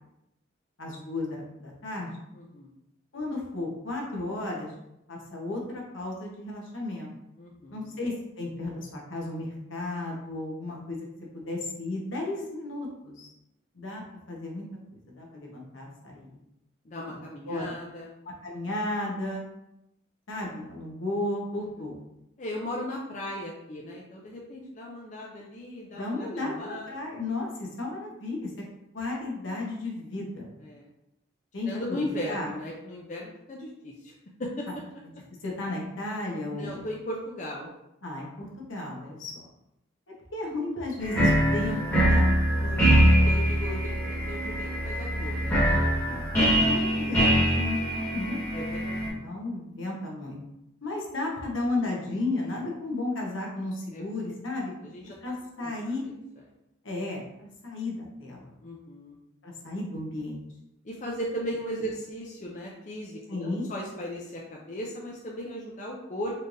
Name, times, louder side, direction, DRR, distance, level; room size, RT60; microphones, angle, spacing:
voice 1, 0.8-2.1 3.1-4.7 5.1-7.1 7.7-11.1 11.3-13.3 13.7-14.0 14.3-14.6 14.9-16.4 17.5-17.7 18.4-19.4 20.3-22.0 25.9-28.5 28.9-30.5 31.5-31.7 32.0-32.5 35.4-36.9 38.0-39.5 40.3-42.3 46.1-48.4 49.0-50.4 50.8-54.7 55.2-56.0 56.8-58.5 59.4-60.4 63.3-63.7, left 2 dB, 75° left, -2 dB, 1.0 m, -34 dB
voice 2, 2.3-2.7 7.4-8.0 16.8-18.1 22.4-26.9 30.6-30.9 31.6-34.1 34.4-34.6 36.5-37.7 42.5-45.6 48.5-49.1 53.9-54.1 54.8-55.2 55.6-55.9 58.6-59.2 60.8-66.4, equal, 40° left, -2 dB, 0.5 m, -37 dB
sound 1, 41.0-49.1, equal, 10° left, 1.4 m, -23 dB
4.2 x 3.2 x 2.6 m, 0.85 s
head